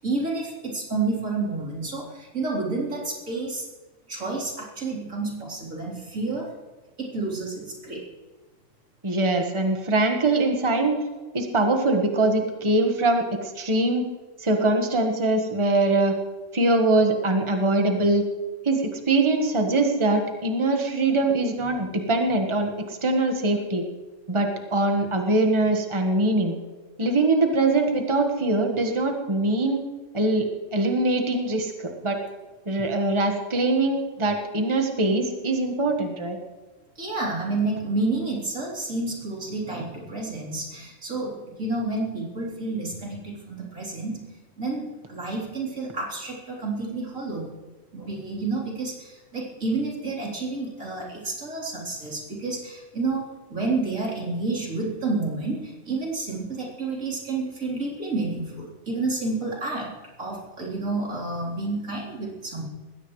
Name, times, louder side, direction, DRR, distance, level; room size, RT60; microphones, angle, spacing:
voice 1, 0.0-3.7 4.1-6.5 7.0-8.1 37.0-44.2 44.6-47.6 47.9-62.7, right 3 dB, 90° right, -4 dB, 4.3 m, -30 dB
voice 2, 9.0-11.0 11.3-14.1 14.4-16.2 16.5-18.2 18.6-23.8 24.3-26.5 27.0-29.8 30.1-30.5 30.7-32.2 32.7-36.4, right 2 dB, 25° right, 3 dB, 1.5 m, -23 dB
20.5 x 16.0 x 3.2 m, 1.2 s
omnidirectional pair, 1.3 m